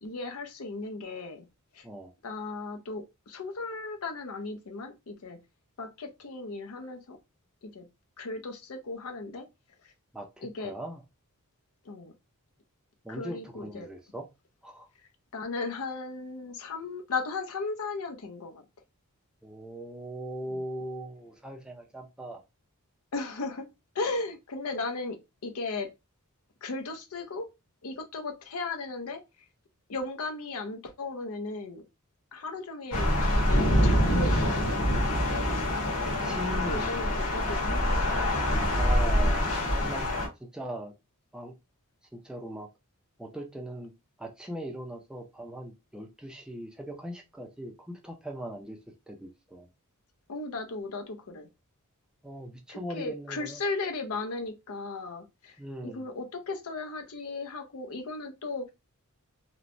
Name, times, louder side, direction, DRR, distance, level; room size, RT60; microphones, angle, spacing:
voice 1, 0.0-1.5 1.7-1.9 2.2-5.4 5.8-7.2 7.6-7.8 8.2-9.5 9.8-9.9 10.4-10.7 11.8-12.1 13.1-13.9 15.3-18.6 20.5-20.6 23.1-23.7 23.9-25.9 26.6-27.5 27.8-29.2 29.9-31.8 32.3-35.7 36.6-38.3 50.3-51.5 52.7-55.6 55.8-58.7, left 3 dB, 70° left, 0.6 m, -36 dB
voice 2, 10.1-11.0 13.0-14.3 14.6-14.9 19.4-22.4 36.2-37.1 38.8-40.1 40.4-40.9 41.3-41.5 42.1-42.7 43.2-43.9 44.2-48.8 49.1-49.7 52.2-53.6 55.6-56.0, right 1 dB, 5° right, 0.4 m, -39 dB
Thunder / Rain, 32.9-40.3, equal, 85° left, 1.2 m, -25 dB
3.0 x 2.1 x 2.5 m
head